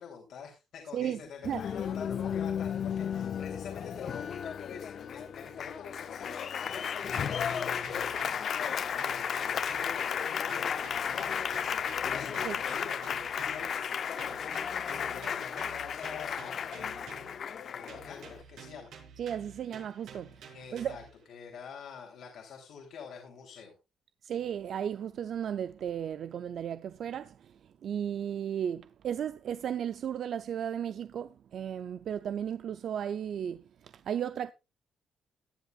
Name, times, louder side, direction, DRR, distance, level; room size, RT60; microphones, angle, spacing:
voice 1, 0.0-11.4 11.9-18.9 20.5-23.7, left 6 dB, 75° left, 3.3 m, -46 dB
Applause, 1.4-18.4, left 7 dB, 55° left, 0.7 m, -34 dB
sound 1, 7.1-10.2 10.5-13.8 14.2-17.5 17.9-21.2, right 6 dB, 85° right, 5.4 m, -51 dB
voice 2, 19.2-21.0 24.2-34.5, right 9 dB, 60° right, 0.5 m, -35 dB
17.5 x 9.9 x 2.4 m
cardioid pair, 105°, 0 cm